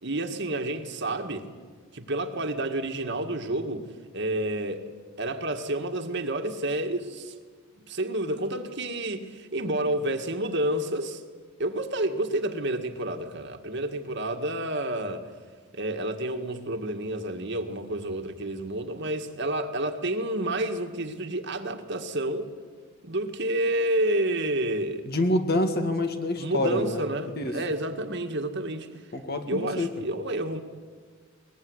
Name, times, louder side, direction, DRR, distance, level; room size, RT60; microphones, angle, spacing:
voice 1, 0.0-1.5 1.9-3.9 4.1-4.9 5.2-7.4 7.9-11.2 11.6-15.3 15.7-22.5 23.0-25.0 26.4-28.9 29.5-30.6, right 1 dB, 50° right, 6 dB, 1.9 m, -29 dB
voice 2, 25.1-27.0 27.4-27.5 29.1-29.9, left 1 dB, 45° left, 6 dB, 2.1 m, -26 dB
22.5 x 20.5 x 9.8 m, 1.5 s
head